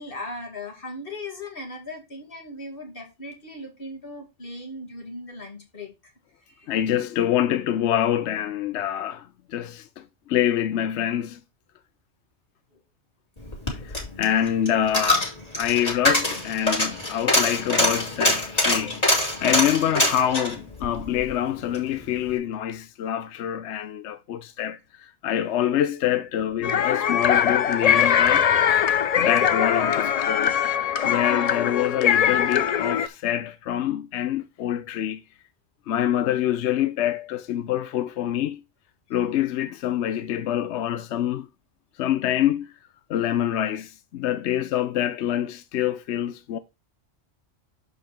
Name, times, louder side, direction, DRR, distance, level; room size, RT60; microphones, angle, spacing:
voice 1, 0.0-6.1 6.4-6.7, left 2 dB, 50° left, 2.4 m, -38 dB
voice 2, 6.7-11.4 13.7-15.3 15.6-28.5 29.2-30.6 31.0-35.2 35.9-38.6 39.1-41.5 42.0-42.7 43.1-46.6, left 11 dB, 70° left, 0.9 m, -26 dB
Coin (dropping), 13.4-21.9 22.2-22.3, left 1 dB, 30° left, 2.8 m, -24 dB
sound 1, 26.6-33.1, left 9 dB, 85° left, 0.3 m, -21 dB
6.9 x 5.3 x 4.5 m
omnidirectional pair, 1.2 m